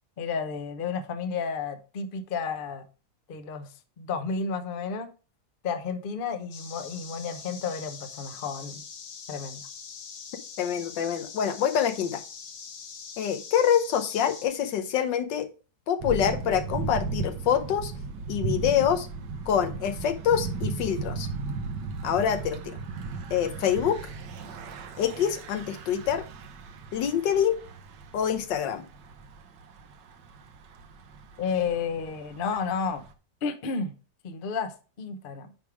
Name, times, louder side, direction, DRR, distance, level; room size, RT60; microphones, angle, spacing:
voice 1, 0.2-2.8 3.3-3.7 4.0-5.1 5.6-8.8 9.3-9.7 31.4-33.0 33.4-33.9 34.2-34.7 35.0-35.5, left 5 dB, 45° left, 8 dB, 0.7 m, -31 dB
sound 1, 6.5-14.5, left 6 dB, 60° left, 1.4 m, -43 dB
voice 2, 10.6-12.2 13.2-15.5 15.9-17.9 18.3-19.1 19.5-21.3 22.0-22.7 23.3-24.0 25.0-26.2 26.9-27.6 28.1-28.9, left 9 dB, 85° left, 8 dB, 1.6 m, -26 dB
Thunder / Bicycle, 16.0-33.1, right 4 dB, 75° right, 1.6 m, -36 dB
9.6 x 3.5 x 4.8 m, 0.35 s
omnidirectional pair, 1.9 m